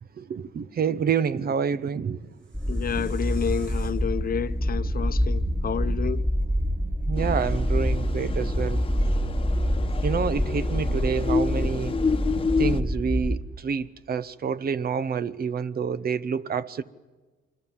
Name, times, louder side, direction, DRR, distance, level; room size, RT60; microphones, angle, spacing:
voice 1, 0.2-2.3 2.9-3.1 7.1-8.8 10.0-12.1 12.6-16.8, right 6 dB, 50° right, 0.9 m, -28 dB
sound 1, 2.1-7.2, right 3 dB, 70° right, 7.2 m, -47 dB
sound 2, 2.5-13.4, equal, 10° right, 1.7 m, -26 dB
voice 2, 2.7-6.3, left 8 dB, 45° left, 0.9 m, -30 dB
sound 3, 7.2-12.8, left 4 dB, 25° left, 1.1 m, -30 dB
27.0 x 24.0 x 7.4 m
cardioid pair, 90°, 20 cm